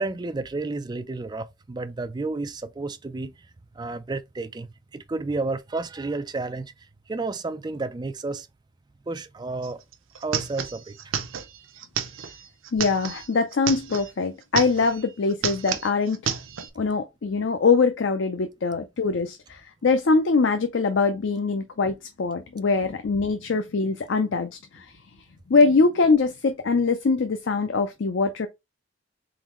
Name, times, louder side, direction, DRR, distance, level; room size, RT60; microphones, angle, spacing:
voice 1, 0.0-3.5 3.8-6.7 7.1-8.5 9.1-9.8 10.2-11.2, right 3 dB, 20° right, 0.3 m, -31 dB
sound 1, 9.6-9.7 9.9-14.1 14.4-15.0 15.3-16.7, right 7 dB, 80° right, 0.6 m, -31 dB
voice 2, 12.7-16.4 16.8-24.9 25.5-28.5, left 4 dB, 65° left, 0.5 m, -23 dB
3.9 x 3.9 x 3.0 m
head